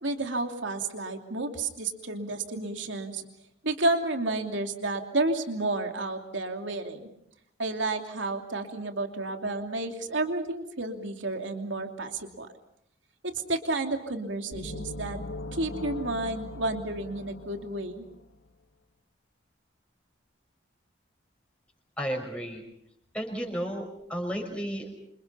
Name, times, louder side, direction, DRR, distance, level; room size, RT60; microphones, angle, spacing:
voice 1, 0.0-3.2 3.6-7.1 7.6-12.5 13.2-15.2 15.5-18.1, right 2 dB, 70° right, 4 dB, 2.9 m, -31 dB
sound 1, 14.5-18.3, left 2 dB, 85° left, 2.0 m, -40 dB
voice 2, 22.0-22.6 23.1-25.0, equal, 5° left, 2 dB, 6.0 m, -33 dB
28.0 x 27.5 x 5.7 m, 0.75 s
head